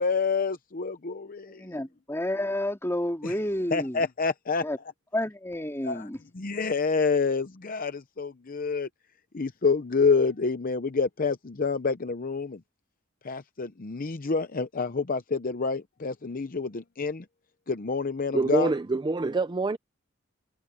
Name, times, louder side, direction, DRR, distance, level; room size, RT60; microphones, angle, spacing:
voice 1, 0.0-1.6 3.2-3.3 3.7-4.6 5.8-6.1 6.3-8.9 9.3-12.6 13.2-17.2 17.7-18.7, left 4 dB, 40° left, 0.7 m, -28 dB
voice 2, 1.5-4.0 4.6-4.8 5.1-6.2, left 1 dB, 10° left, 3.5 m, -30 dB
voice 3, 18.3-19.8, right 3 dB, 20° right, 0.4 m, -25 dB
head